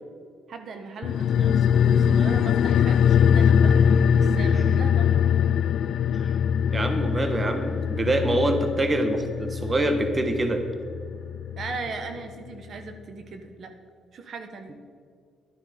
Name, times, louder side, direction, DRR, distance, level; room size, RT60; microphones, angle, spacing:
voice 1, 0.5-3.8 4.2-5.2 11.6-13.7 14.1-14.8, right 4 dB, 60° right, 7 dB, 1.2 m, -38 dB
sound 1, 1.0-11.9 12.2-12.3, left 8 dB, 70° left, 0.3 m, -22 dB
voice 2, 6.7-10.6, right 1 dB, 25° right, 7 dB, 1.1 m, -25 dB
11.5 x 10.5 x 5.1 m, 2.2 s
cardioid pair, 90°, 0 cm